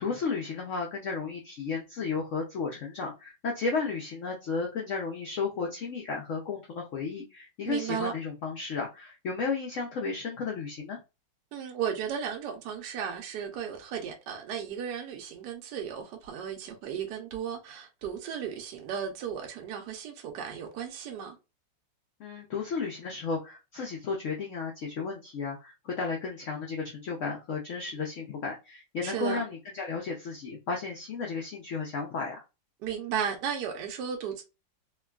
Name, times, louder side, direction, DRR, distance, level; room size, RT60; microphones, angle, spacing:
voice 1, 0.0-11.0 22.2-32.4, left 4 dB, 80° left, 0.6 m, -33 dB
voice 2, 7.6-8.1 11.5-21.4 29.0-29.4 32.8-34.4, right 8 dB, 75° right, 1.2 m, -35 dB
3.4 x 2.2 x 2.2 m
omnidirectional pair, 2.0 m